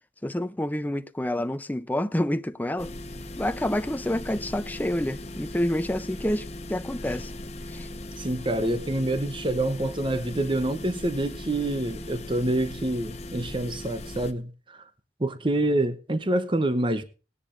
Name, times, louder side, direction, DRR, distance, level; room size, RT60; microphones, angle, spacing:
voice 1, 0.2-2.9 3.4-7.3 7.7-7.9, left 1 dB, 10° left, 0.5 m, -28 dB
sound 1, 2.8-14.3, left 1 dB, 35° left, 1.0 m, -39 dB
voice 2, 8.2-14.8 15.2-17.0, right 1 dB, 25° right, 0.8 m, -27 dB
19.0 x 10.0 x 2.6 m
head